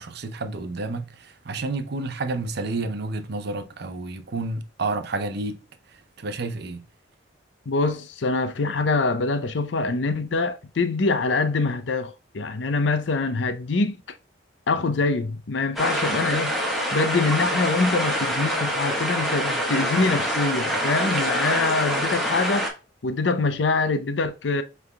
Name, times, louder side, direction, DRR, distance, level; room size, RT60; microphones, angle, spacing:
voice 1, 0.0-5.6 6.2-6.8, right 3 dB, 60° right, 0.6 m, -30 dB
voice 2, 7.7-14.0 14.7-16.5 16.9-22.6 23.0-24.6, left 3 dB, 70° left, 0.6 m, -24 dB
sound 1, 15.8-22.7, equal, ahead, 1.0 m, -25 dB
5.8 x 3.4 x 2.2 m
head